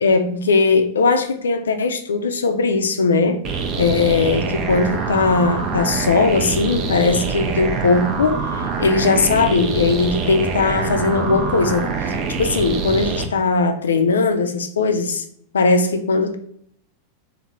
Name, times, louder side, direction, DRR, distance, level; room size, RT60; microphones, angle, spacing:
voice 1, 0.0-3.4 3.8-15.2 15.5-16.4, left 4 dB, 70° left, 0.3 m, -19 dB
sound 1, 3.4-13.3, right 4 dB, 35° right, 0.4 m, -25 dB
3.2 x 2.1 x 2.9 m
figure-of-eight pair, 90°, 0 cm